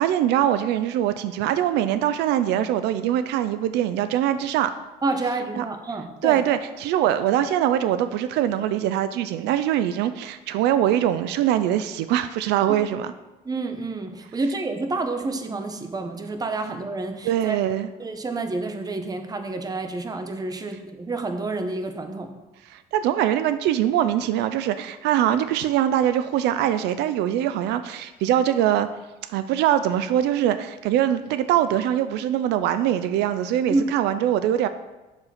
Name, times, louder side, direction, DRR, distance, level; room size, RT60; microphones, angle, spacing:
voice 1, 0.0-4.7 5.6-5.7 6.2-13.1 17.2-17.9 22.7-28.9 29.3-34.7, right 11 dB, 85° right, 11 dB, 0.4 m, -23 dB
voice 2, 5.0-6.4 13.4-17.6 18.0-22.3 33.7-33.8, right 3 dB, 20° right, 7 dB, 0.9 m, -29 dB
7.1 x 6.5 x 4.2 m, 1.1 s
cardioid pair, 110°, 17 cm